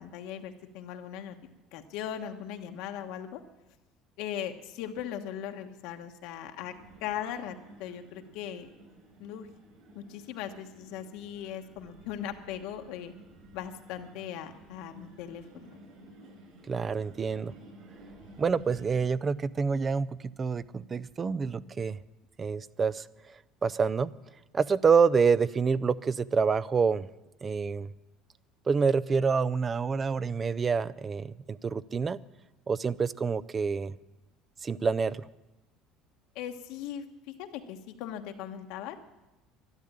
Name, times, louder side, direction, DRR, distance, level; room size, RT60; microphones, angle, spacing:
voice 1, 0.0-1.4 1.7-3.4 4.2-6.7 7.0-8.7 9.2-9.5 9.9-13.1 13.5-15.8 36.3-39.0, left 10 dB, 75° left, 5 dB, 1.2 m, -39 dB
sound 1, 6.6-19.1, right 1 dB, 50° right, 6.9 m, -54 dB
voice 2, 16.7-17.5 18.4-22.0 22.4-23.1 23.6-24.1 24.5-27.1 27.4-27.9 28.7-32.2 32.7-33.9 34.6-35.2, right 5 dB, 25° right, 19 dB, 0.4 m, -27 dB
12.0 x 12.0 x 8.8 m, 1.0 s
cardioid pair, 130°, 0 cm